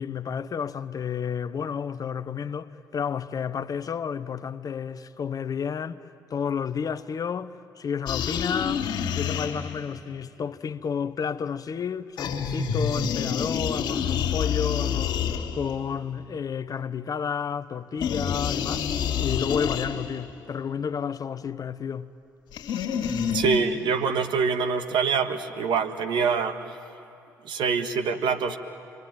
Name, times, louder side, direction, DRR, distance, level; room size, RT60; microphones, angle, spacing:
voice 1, 0.0-6.0 6.3-8.8 9.1-15.2 15.5-18.8 19.2-22.1, left 7 dB, 40° left, 0.8 m, -31 dB
sound 1, 8.1-9.9 12.2-15.9 18.0-20.3 22.5-23.6, left 7 dB, 60° left, 2.5 m, -28 dB
voice 2, 23.3-26.6 27.4-28.6, right 5 dB, 60° right, 1.6 m, -25 dB
27.5 x 23.0 x 9.2 m
figure-of-eight pair, 45°, 9 cm